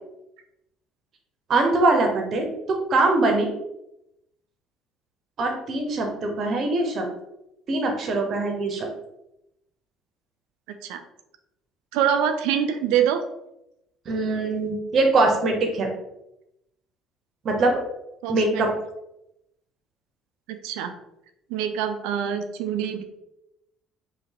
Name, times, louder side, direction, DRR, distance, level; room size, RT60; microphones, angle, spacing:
voice 1, 1.5-3.5 5.4-7.1 7.7-8.9 14.1-15.9 17.4-17.8 18.3-18.7, right 2 dB, 45° right, 3 dB, 0.8 m, -22 dB
voice 2, 11.9-13.2 18.2-18.7 20.5-20.9 21.5-23.0, right 9 dB, 65° right, 8 dB, 0.4 m, -25 dB
3.8 x 2.3 x 3.5 m, 0.85 s
figure-of-eight pair, 55°, 0 cm